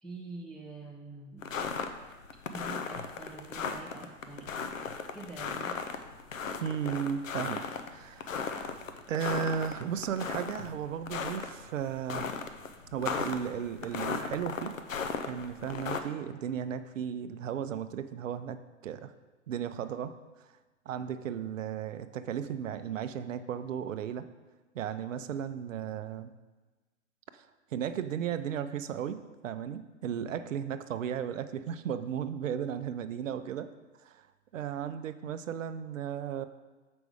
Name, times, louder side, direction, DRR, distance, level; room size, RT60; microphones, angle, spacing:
voice 1, 0.0-1.5 2.5-4.5 5.1-5.8, right 3 dB, ahead, -5 dB, 0.4 m, -45 dB
sound 1, 1.4-16.0, left 5 dB, 80° left, 0.8 m, -36 dB
voice 2, 6.6-7.6 7.9-8.8 9.1-12.4 12.9-14.7 15.3-19.1 19.5-20.1 20.9-24.2 24.7-26.3 27.3-27.5 27.7-29.2 29.4-33.7 34.0-34.2 34.5-36.5, right 8 dB, 75° right, 11 dB, 0.6 m, -35 dB
6.9 x 5.3 x 4.8 m, 1.2 s
hypercardioid pair, 125°, 39 cm